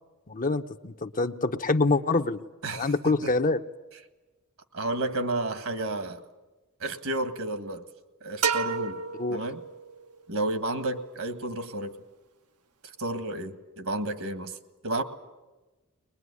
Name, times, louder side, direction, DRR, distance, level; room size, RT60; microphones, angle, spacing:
voice 1, 0.3-2.4 2.7-3.6 9.2-9.4, left 3 dB, 40° left, 7 dB, 0.8 m, -26 dB
voice 2, 2.6-3.3 4.7-6.2 6.8-7.8 8.2-9.0 9.3-9.6 10.3-12.0 13.0-14.6 14.8-15.0, right 2 dB, 65° right, 9 dB, 1.7 m, -31 dB
sound 1, 8.4-10.2, right 5 dB, 90° right, 1.3 m, -30 dB
22.0 x 21.5 x 9.7 m, 1.1 s
head